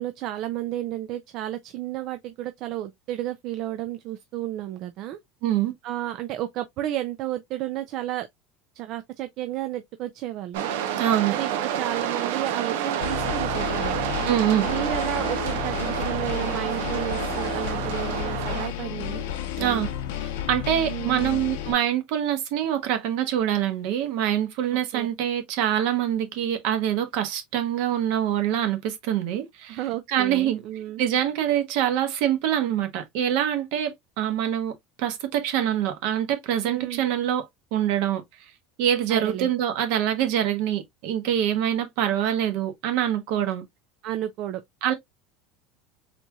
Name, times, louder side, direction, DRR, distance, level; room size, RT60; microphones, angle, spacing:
voice 1, 0.0-5.2 5.8-8.3 8.8-10.7 11.3-14.0 14.7-19.2 19.6-19.9 20.9-21.4 24.7-25.1 29.7-31.0 36.7-37.0 39.1-39.5 44.0-44.6, right 13 dB, 45° right, 0.4 m, -32 dB
voice 2, 5.4-5.7 11.0-11.3 14.3-14.7 19.6-19.9 20.5-29.8 30.1-30.6 31.0-34.7 35.0-37.4 37.7-38.2 38.8-43.6 44.8-44.9, right 10 dB, 60° right, 1.1 m, -25 dB
sound 1, 10.5-18.7, right 9 dB, 85° right, 0.7 m, -29 dB
sound 2, 13.0-21.7, left 11 dB, 85° left, 0.8 m, -32 dB
4.1 x 3.0 x 2.3 m
cardioid pair, 165°, 0 cm